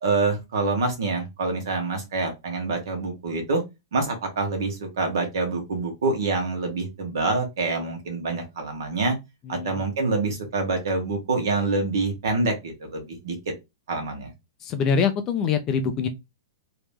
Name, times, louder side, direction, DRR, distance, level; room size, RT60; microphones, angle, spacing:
voice 1, 0.0-3.6 3.9-9.1 9.5-13.3 13.9-14.3, right 3 dB, 60° right, 1.6 m, -26 dB
voice 2, 9.4-9.8 14.6-16.1, left 6 dB, 15° left, 0.3 m, -24 dB
3.2 x 2.9 x 3.4 m
supercardioid pair, 180°, 2 cm